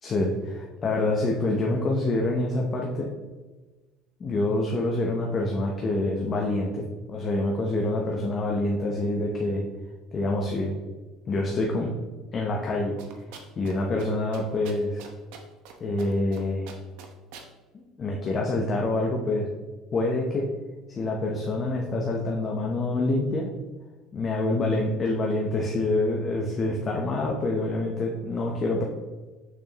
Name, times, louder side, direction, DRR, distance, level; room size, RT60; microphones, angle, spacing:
voice 1, 0.0-3.1 4.2-9.6 10.1-10.8 11.3-11.9 12.3-13.0 13.6-15.0 15.8-16.7 17.7-19.5 19.9-20.5 21.0-23.5 24.1-28.8, left 2 dB, 25° left, -1 dB, 0.7 m, -26 dB
sound 1, 13.0-13.7 14.0-14.1 14.3-15.7 16.0-16.4 16.7-17.5, right 6 dB, 70° right, 0.9 m, -44 dB
6.7 x 6.1 x 2.9 m, 1.2 s
cardioid pair, 175°, 0 cm